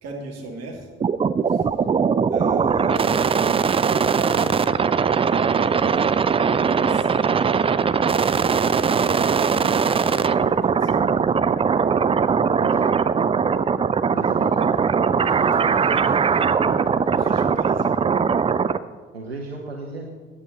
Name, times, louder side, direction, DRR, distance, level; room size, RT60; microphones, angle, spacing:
voice 1, 0.0-0.9 1.5-1.7 2.3-4.5 5.8-6.2 6.6-7.1 10.2-11.1 15.2-16.3 17.1-18.1, right 2 dB, 55° right, 0 dB, 2.4 m, -37 dB
sound 1, 1.0-18.8, right 6 dB, 20° right, 0.4 m, -20 dB
voice 2, 8.9-9.7 12.6-12.9 14.1-14.7 19.1-20.1, right 3 dB, 90° right, 0 dB, 0.7 m, -35 dB
14.0 x 8.9 x 4.1 m, 1.4 s
figure-of-eight pair, 45°, 30 cm